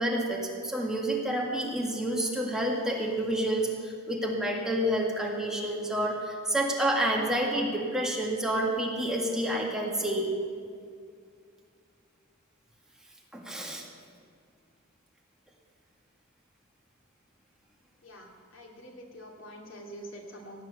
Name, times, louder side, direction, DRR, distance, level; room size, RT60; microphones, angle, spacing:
voice 1, 0.0-10.3 13.3-13.8, right 1 dB, 5° right, -2 dB, 1.9 m, -29 dB
voice 2, 18.0-20.6, equal, 90° left, 0 dB, 2.6 m, -46 dB
17.0 x 9.1 x 7.0 m, 2.3 s
head